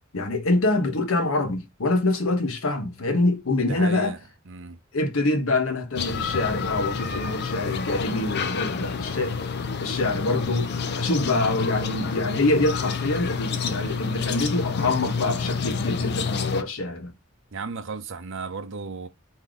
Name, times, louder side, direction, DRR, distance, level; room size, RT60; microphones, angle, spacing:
voice 1, 0.1-4.1 4.9-9.4 9.8-17.1, left 2 dB, 85° left, 1.0 m, -25 dB
voice 2, 3.7-4.2 4.5-4.8 17.5-19.1, right 4 dB, 65° right, 0.7 m, -34 dB
sound 1, 6.0-16.6, left 5 dB, 55° left, 0.5 m, -29 dB
3.8 x 2.7 x 4.8 m
head